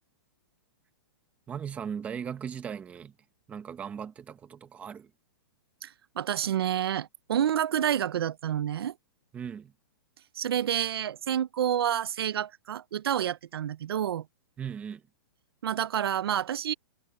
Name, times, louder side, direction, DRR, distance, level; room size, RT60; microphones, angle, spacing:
voice 1, 1.5-3.1 3.5-5.1 9.3-9.7 14.6-15.0, right 7 dB, 10° right, 1.3 m, -38 dB
voice 2, 5.8-8.9 10.4-14.3 15.6-16.7, right 10 dB, 80° right, 0.6 m, -29 dB
hypercardioid pair, 170°, 13 cm